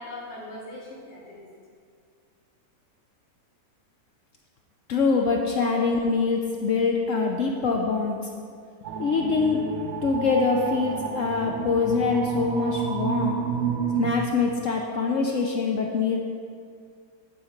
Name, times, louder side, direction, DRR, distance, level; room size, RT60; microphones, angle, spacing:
voice 1, 0.0-1.5, left 1 dB, 85° left, -4 dB, 2.3 m, -41 dB
voice 2, 4.9-8.2 9.0-9.6 10.0-13.4 14.0-16.2, left 4 dB, 70° left, 1 dB, 0.7 m, -24 dB
sound 1, 8.8-14.1, right 7 dB, 60° right, 0.7 m, -30 dB
10.5 x 4.2 x 5.1 m, 2.2 s
omnidirectional pair, 1.9 m